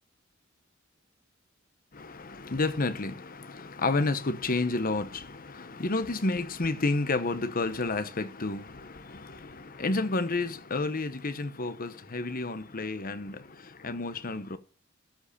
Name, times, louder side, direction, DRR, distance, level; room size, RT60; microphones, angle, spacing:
voice 1, 1.9-14.6, left 3 dB, 45° left, 1.0 m, -31 dB
13.0 x 5.2 x 8.5 m
head